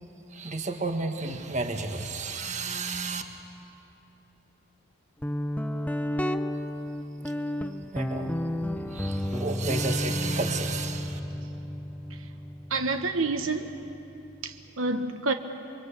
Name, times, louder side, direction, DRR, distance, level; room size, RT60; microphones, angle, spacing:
voice 1, 0.3-3.2 7.9-11.2, right 3 dB, 35° right, 1.6 m, -32 dB
Guitar, 5.2-14.7, left 1 dB, 10° left, 0.6 m, -32 dB
voice 2, 12.7-13.7 14.4-15.3, right 3 dB, 85° right, 1.2 m, -28 dB
29.0 x 22.5 x 8.4 m
head